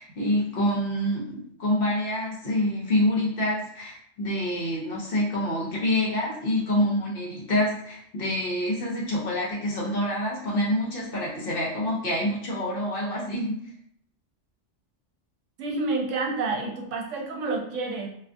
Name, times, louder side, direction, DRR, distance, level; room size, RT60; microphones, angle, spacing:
voice 1, 0.0-13.6, left 1 dB, 55° left, -4 dB, 0.7 m, -27 dB
voice 2, 15.6-18.1, right 3 dB, 80° right, 1 dB, 0.9 m, -29 dB
2.3 x 2.3 x 2.5 m, 0.68 s
omnidirectional pair, 1.3 m